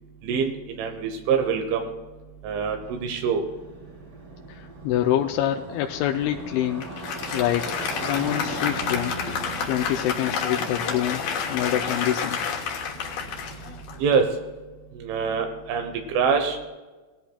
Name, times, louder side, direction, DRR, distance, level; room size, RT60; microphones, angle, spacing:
voice 1, 0.2-1.9 2.4-3.4 12.6-12.7 14.0-14.4 14.9-16.7, right 6 dB, 85° right, 4 dB, 3.5 m, -25 dB
Motorcycle, 2.8-14.2, right 2 dB, 35° right, 1.7 m, -39 dB
voice 2, 4.5-6.9 7.3-9.2 9.7-11.2 11.5-12.4, left 12 dB, 85° left, 3 dB, 3.0 m, -26 dB
Applause, 6.8-14.4, left 6 dB, 70° left, 2.6 m, -30 dB
19.0 x 13.0 x 2.3 m, 1.3 s
omnidirectional pair, 5.4 m